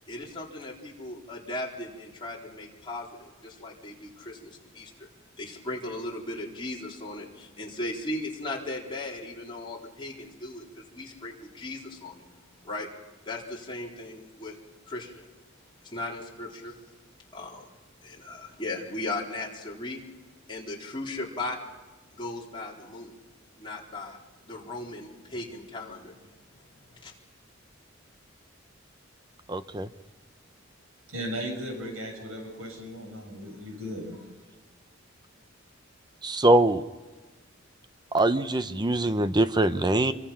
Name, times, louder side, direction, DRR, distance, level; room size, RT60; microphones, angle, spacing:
voice 1, 0.1-5.1 5.4-12.3 12.6-12.9 13.3-14.6 14.9-15.3 15.8-16.7 17.3-17.7 18.0-20.0 20.5-21.6 22.1-23.2 23.6-24.2 24.4-26.2 26.7-27.1, left 2 dB, 25° left, -3 dB, 3.9 m, -37 dB
voice 2, 29.5-29.9 36.2-36.8 38.1-40.1, right 2 dB, 20° right, 11 dB, 0.7 m, -23 dB
voice 3, 31.1-34.3, equal, 85° right, 3 dB, 7.2 m, -36 dB
27.5 x 24.0 x 5.8 m, 1.2 s
head